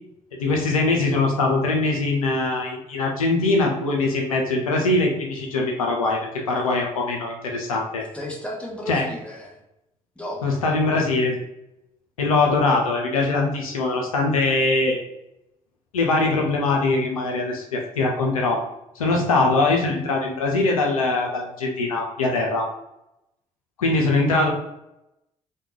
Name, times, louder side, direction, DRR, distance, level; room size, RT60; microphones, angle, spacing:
voice 1, 0.4-6.2 6.5-8.0 8.9-9.0 10.4-11.4 12.2-15.0 15.9-18.6 19.0-22.7 23.8-24.5, left 3 dB, 85° left, 1 dB, 0.4 m, -22 dB
voice 2, 8.1-9.6 10.2-10.6, left 1 dB, 5° left, -2 dB, 1.1 m, -34 dB
3.5 x 2.2 x 3.0 m, 0.87 s
figure-of-eight pair, 45°, 17 cm